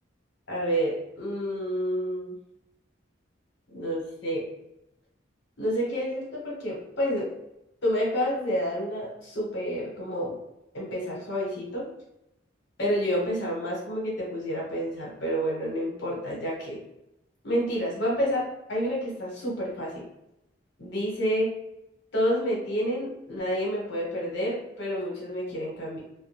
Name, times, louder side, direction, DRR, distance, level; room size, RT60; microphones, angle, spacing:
voice 1, 0.5-2.4 3.7-4.4 5.6-7.3 7.8-10.4 10.7-11.9 12.8-16.8 17.4-20.0 20.8-21.5 22.1-26.0, equal, 70° left, -4 dB, 0.9 m, -29 dB
2.3 x 2.1 x 2.9 m, 0.86 s
head